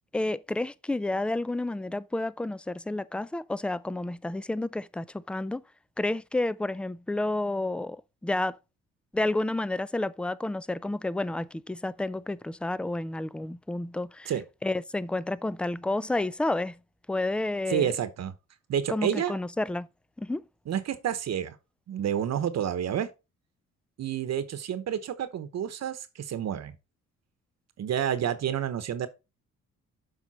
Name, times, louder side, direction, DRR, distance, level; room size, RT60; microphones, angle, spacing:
voice 1, 0.1-5.6 6.0-8.6 9.1-14.3 14.6-16.8 17.1-17.9 18.9-19.9 20.2-20.4, left 2 dB, 5° left, 0.3 m, -30 dB
voice 2, 17.7-18.3 18.7-19.4 20.7-21.6 21.9-23.1 24.0-26.7 27.8-29.1, right 9 dB, 60° right, 1.0 m, -29 dB
7.6 x 5.3 x 4.2 m
cardioid pair, 90°, 30 cm